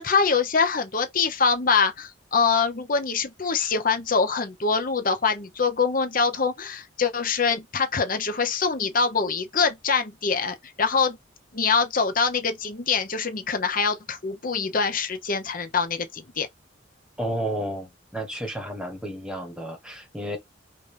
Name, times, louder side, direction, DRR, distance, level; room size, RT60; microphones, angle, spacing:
voice 1, 0.0-11.2 11.5-16.5, left 5 dB, 45° left, 0.8 m, -24 dB
voice 2, 17.2-20.4, right 1 dB, 5° right, 1.2 m, -32 dB
5.1 x 2.6 x 3.3 m
head